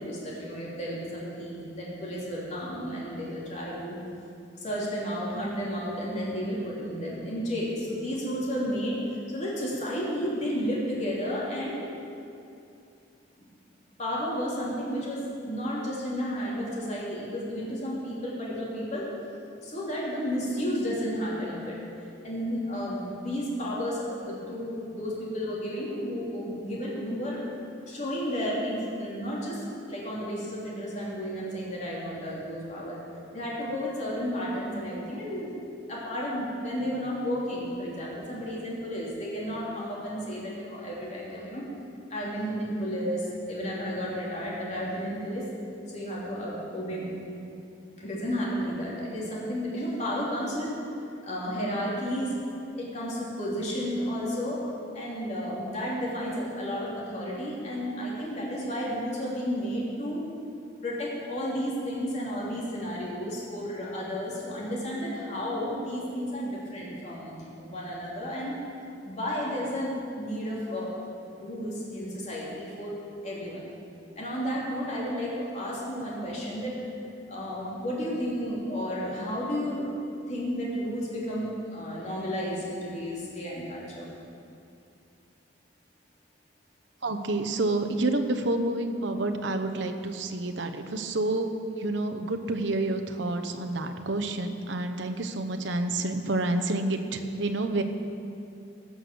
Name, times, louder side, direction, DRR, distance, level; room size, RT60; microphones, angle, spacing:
voice 1, 0.0-4.0 4.6-11.9 14.0-19.1 19.6-21.8 22.2-27.4 27.9-33.0 33.3-35.5 35.9-41.6 42.1-45.5 45.9-47.1 48.0-50.7 51.2-52.3 52.7-54.6 54.9-60.2 60.8-68.5 69.0-70.9 71.3-72.9 73.2-73.6 74.1-76.7 77.3-79.9 80.3-84.1, equal, 40° left, -5 dB, 3.1 m, -32 dB
voice 2, 87.0-97.8, right 2 dB, 70° right, 5 dB, 0.9 m, -29 dB
16.5 x 6.3 x 6.9 m, 2.6 s
head